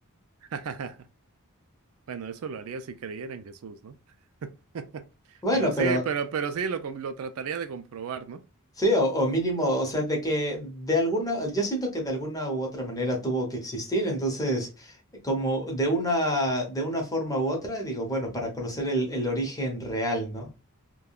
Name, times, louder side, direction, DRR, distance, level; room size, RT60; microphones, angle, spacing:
voice 1, 0.5-1.0 2.1-4.0 4.4-8.4, right 6 dB, 70° right, 0.4 m, -34 dB
voice 2, 5.4-6.0 8.8-15.0 15.2-20.5, equal, 15° left, 0.9 m, -27 dB
3.5 x 2.2 x 2.3 m
head